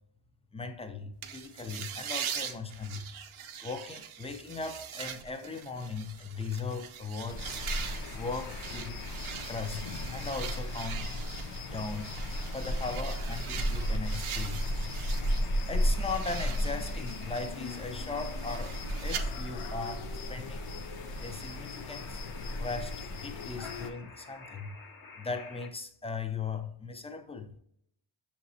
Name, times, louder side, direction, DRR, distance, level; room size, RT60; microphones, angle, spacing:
voice 1, 0.5-3.1 3.6-7.4 8.1-9.0 9.5-11.1 11.4-12.2 12.5-14.6 15.7-20.6 21.2-22.2 22.6-24.8 25.2-27.6, left 4 dB, 15° left, 0.4 m, -38 dB
sound 1, 1.2-15.4 15.8-19.2, right 8 dB, 70° right, 0.6 m, -42 dB
sound 2, 7.3-23.9, left 1 dB, 85° left, 0.7 m, -35 dB
sound 3, 7.4-25.7, left 4 dB, 45° left, 0.8 m, -50 dB
6.2 x 3.0 x 2.6 m
wide cardioid pair, 105°, 49 cm